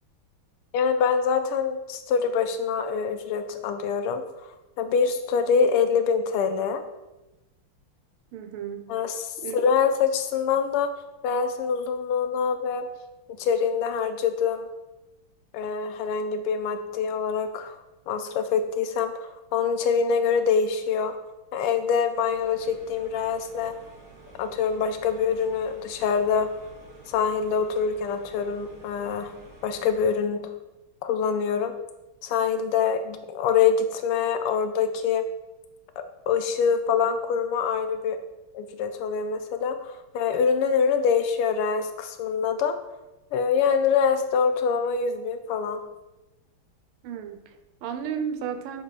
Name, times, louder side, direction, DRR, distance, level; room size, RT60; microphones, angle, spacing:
voice 1, 0.7-4.2 4.8-6.8 8.9-10.9 11.2-12.9 13.4-14.7 15.5-17.8 18.1-21.1 21.5-23.7 24.4-26.5 27.1-29.3 29.6-30.5 31.0-31.7 32.2-35.2 36.3-38.2 38.5-42.8 43.3-45.8, left 6 dB, 85° left, 8 dB, 1.6 m, -25 dB
voice 2, 8.3-8.9 9.4-9.6 47.0-48.8, right 8 dB, 85° right, 8 dB, 1.5 m, -33 dB
sound 1, 22.2-30.2, right 2 dB, 25° right, 1.0 m, -50 dB
6.7 x 4.2 x 4.7 m, 1.0 s
omnidirectional pair, 2.4 m